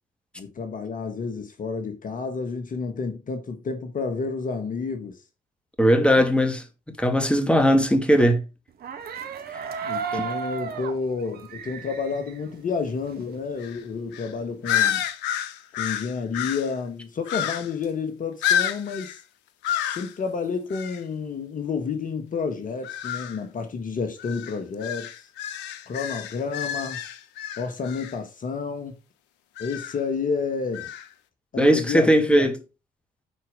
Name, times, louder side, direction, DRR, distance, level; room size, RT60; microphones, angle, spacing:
voice 1, 0.4-5.2 9.8-15.0 15.8-19.2 19.9-25.3 25.9-27.0 27.6-28.9 29.6-30.9 31.5-32.5, left 5 dB, 45° left, 1.6 m, -30 dB
voice 2, 5.8-6.6 7.0-8.4 9.5-9.6 10.1-10.3 31.6-32.6, equal, 5° left, 2.5 m, -19 dB
sound 1, 8.7-13.4 13.7-14.8, right 6 dB, 60° right, 1.8 m, -35 dB
sound 2, 13.6-13.8 14.1-14.3 14.6-16.7 17.3-17.8 18.4-19.2 19.6-20.1 20.7-21.0 22.8-23.4 24.2-28.1 29.6-30.0 30.7-31.1, left 10 dB, 75° left, 0.9 m, -29 dB
9.4 x 4.6 x 5.1 m
hypercardioid pair, 50°, 18 cm